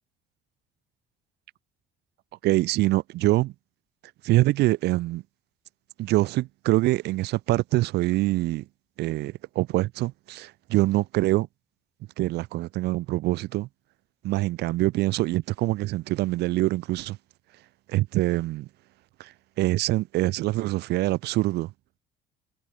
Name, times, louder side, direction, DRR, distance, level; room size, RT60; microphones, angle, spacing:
voice 1, 2.4-3.5 4.2-5.2 6.0-8.6 9.0-11.5 12.2-13.7 14.2-17.2 17.9-18.7 19.2-21.7, right 18 dB, 80° right, 0.9 m, -24 dB
cardioid pair, 110°, 17 cm